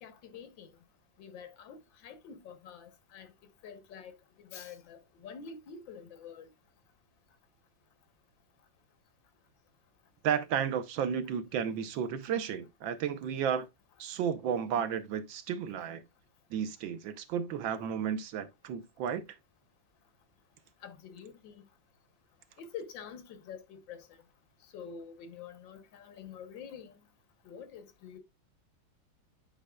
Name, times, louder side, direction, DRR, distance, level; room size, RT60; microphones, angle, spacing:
voice 1, 0.0-0.7 1.2-3.3 3.6-4.1 4.4-6.5 20.8-21.6 22.6-24.1 24.7-27.0 27.5-28.2, left 6 dB, 80° left, 1.7 m, -47 dB
voice 2, 10.2-13.7 14.0-16.0 16.5-19.2, right 8 dB, 85° right, 1.6 m, -33 dB
9.7 x 5.0 x 2.2 m
omnidirectional pair, 2.0 m